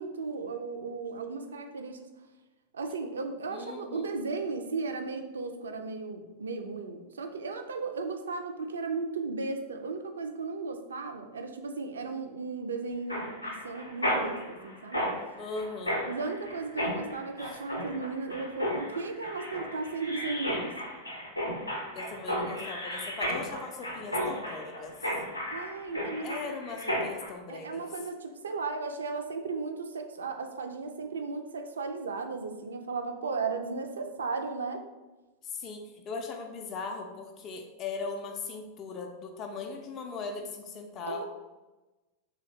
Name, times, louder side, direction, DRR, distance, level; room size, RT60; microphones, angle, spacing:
voice 1, 0.0-2.0 2.7-15.0 16.1-20.8 25.5-26.6 27.5-34.8 41.1-41.2, right 4 dB, 70° right, 6 dB, 0.3 m, -35 dB
voice 2, 3.5-4.1 15.4-16.0 21.9-25.0 26.2-27.8 35.4-41.2, left 4 dB, 30° left, 3 dB, 0.3 m, -39 dB
Mechanisms, 13.1-27.3, equal, 85° left, 0.5 m, -34 dB
3.0 x 2.8 x 2.7 m, 1.1 s
figure-of-eight pair, 90°, 0 cm